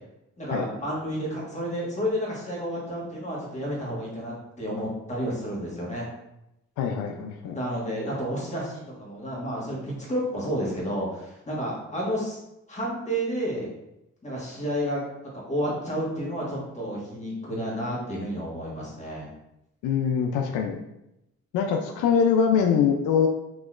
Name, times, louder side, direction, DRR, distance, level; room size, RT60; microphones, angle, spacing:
voice 1, 0.4-6.1 7.5-12.4 12.7-13.7 14.2-15.0 15.3-19.3, equal, 25° left, -4 dB, 1.4 m, -31 dB
voice 2, 6.8-7.6 19.8-20.8 21.5-23.3, left 7 dB, 85° left, 4 dB, 0.4 m, -23 dB
4.0 x 2.9 x 2.4 m, 0.87 s
cardioid pair, 90°, 30 cm